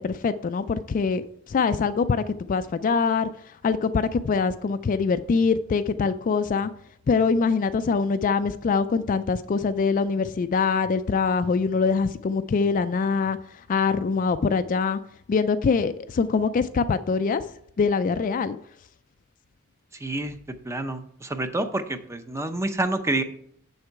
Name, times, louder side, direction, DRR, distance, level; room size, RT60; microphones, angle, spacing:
voice 1, 0.0-6.7 7.1-15.0 15.3-17.5 17.8-18.6, left 5 dB, 35° left, 0.3 m, -24 dB
voice 2, 19.9-20.3 20.6-23.2, right 2 dB, 15° right, 0.6 m, -28 dB
7.1 x 6.7 x 4.6 m
head